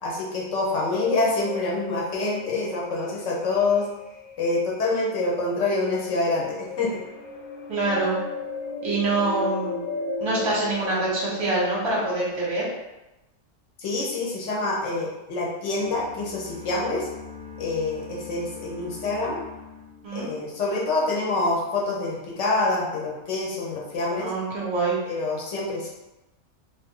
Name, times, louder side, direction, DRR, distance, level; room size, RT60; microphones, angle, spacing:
voice 1, 0.0-3.9 4.4-7.0 13.8-17.1 17.6-19.4 20.1-24.3 25.0-25.9, left 2 dB, 60° left, -3 dB, 1.1 m, -26 dB
sound 1, 0.7-12.1, left 3 dB, 80° left, 1.2 m, -36 dB
voice 2, 7.7-8.2 8.8-9.8 10.2-12.7 20.0-20.3 24.2-25.0, right 2 dB, 25° right, -5 dB, 0.7 m, -25 dB
sound 2, 15.7-20.7, left 5 dB, 65° right, 0.4 m, -43 dB
2.6 x 2.5 x 3.7 m, 0.98 s
omnidirectional pair, 1.6 m